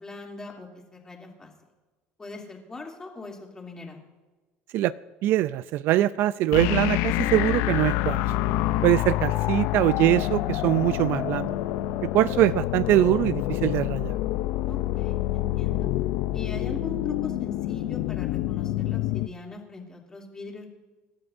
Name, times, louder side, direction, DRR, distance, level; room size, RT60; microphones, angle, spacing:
voice 1, 0.0-1.5 2.2-4.0 14.6-15.9 16.3-20.7, left 3 dB, 15° left, -1 dB, 2.8 m, -41 dB
voice 2, 5.2-8.2 8.8-11.6 12.0-14.2, right 14 dB, 60° right, 16 dB, 0.3 m, -23 dB
sound 1, 6.5-19.3, left 15 dB, 80° left, 0.5 m, -27 dB
27.5 x 12.0 x 2.6 m, 1.3 s
cardioid pair, 140°, 4 cm